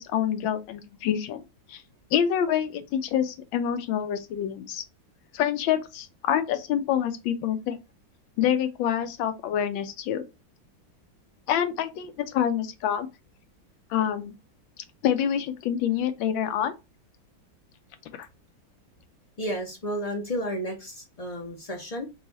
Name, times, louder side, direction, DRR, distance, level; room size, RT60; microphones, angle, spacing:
voice 1, 0.0-1.4 1.7-1.8 2.1-4.8 5.3-7.8 8.4-10.2 11.5-13.1 13.9-14.3 14.8-16.7 18.1-18.3, left 9 dB, 80° left, 1.4 m, -27 dB
voice 2, 19.4-22.1, equal, 60° left, 0.3 m, -32 dB
4.1 x 2.3 x 4.0 m
omnidirectional pair, 2.1 m